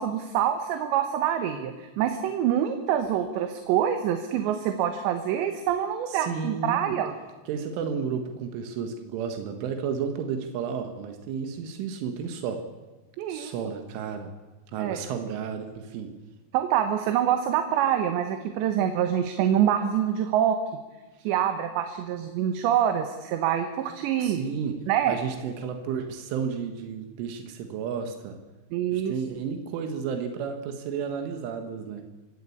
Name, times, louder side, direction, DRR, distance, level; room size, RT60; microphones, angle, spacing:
voice 1, 0.0-7.1 13.2-13.5 14.8-15.0 16.5-20.6 21.2-24.4 24.9-25.2 28.7-29.2, right 10 dB, 75° right, 7 dB, 3.3 m, -25 dB
voice 2, 6.1-7.0 7.5-12.6 13.3-14.3 14.7-16.1 24.2-24.8 25.1-28.4 28.9-32.0, right 6 dB, 90° right, 6 dB, 4.0 m, -32 dB
25.0 x 16.5 x 8.6 m, 1.2 s
omnidirectional pair, 5.4 m